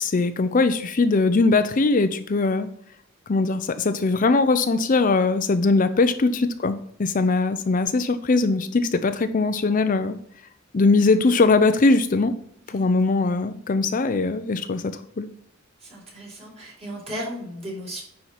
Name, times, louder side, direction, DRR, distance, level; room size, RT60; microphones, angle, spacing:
voice 1, 0.0-2.7 3.3-10.2 10.7-12.3 12.7-15.3, left 3 dB, 40° left, 10 dB, 0.5 m, -21 dB
voice 2, 15.8-18.0, equal, 30° right, -3 dB, 4.2 m, -35 dB
9.8 x 4.4 x 5.7 m, 0.68 s
head